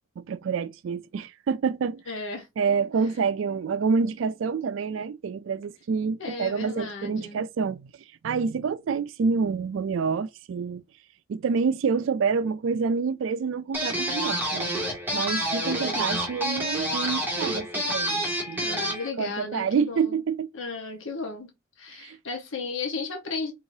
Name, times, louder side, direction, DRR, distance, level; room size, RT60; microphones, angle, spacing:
voice 1, 0.2-2.0 2.6-7.9 8.2-10.8 11.3-14.7 15.1-20.5 21.9-22.2, right 5 dB, 85° right, 0.4 m, -27 dB
voice 2, 2.1-2.5 6.2-7.5 15.7-16.1 18.6-20.2 20.5-21.5 21.8-23.5, left 3 dB, 85° left, 1.1 m, -34 dB
sound 1, 13.7-19.1, equal, 10° right, 2.0 m, -28 dB
4.7 x 3.7 x 2.7 m
head